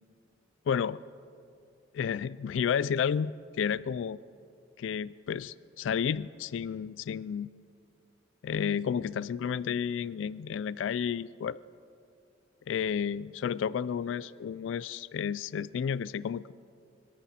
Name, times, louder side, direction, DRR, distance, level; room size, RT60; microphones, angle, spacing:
voice 1, 0.7-1.0 1.9-3.3 3.6-4.2 4.8-7.5 8.4-11.6 12.7-16.5, left 7 dB, 80° left, 20 dB, 0.3 m, -31 dB
24.5 x 13.0 x 4.3 m, 2.4 s
head